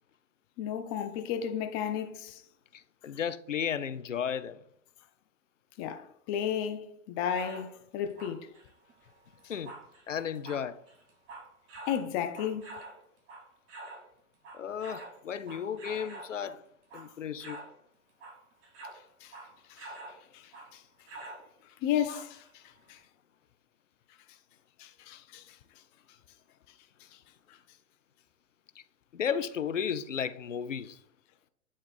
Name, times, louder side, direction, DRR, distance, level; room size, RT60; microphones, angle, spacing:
voice 1, 0.6-2.4 5.8-8.5 11.9-12.8 19.2-19.3 19.7-19.9 20.3-20.8 21.8-22.6 22.9-23.0 24.8-25.6, left 9 dB, 20° left, 0.4 m, -33 dB
voice 2, 2.7-4.6 9.5-9.7 10.1-10.8 14.5-16.6 16.9-17.6 22.1-22.2 29.1-31.0, left 8 dB, 80° left, 0.6 m, -34 dB
sound 1, 7.4-7.7 8.1-14.1 14.3-16.4 16.8-17.1 17.4-17.8 18.1-20.2 20.5-20.7 21.1-21.5 22.1-22.5 22.9-23.0, right 2 dB, 30° right, 3.1 m, -47 dB
8.8 x 3.6 x 4.2 m
figure-of-eight pair, 100°, 37 cm